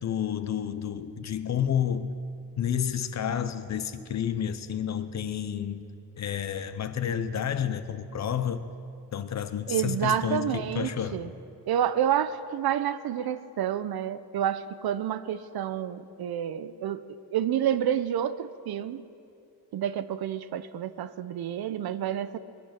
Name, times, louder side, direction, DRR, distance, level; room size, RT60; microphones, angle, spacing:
voice 1, 0.0-2.2 2.6-5.8 6.2-8.6 9.1-11.2, left 8 dB, 45° left, 11 dB, 0.7 m, -30 dB
voice 2, 9.7-11.3 11.7-17.0 17.3-19.0 19.7-22.4, right 10 dB, 65° right, 13 dB, 0.7 m, -29 dB
21.5 x 10.5 x 5.8 m, 2.6 s
wide cardioid pair, 175°, 40 cm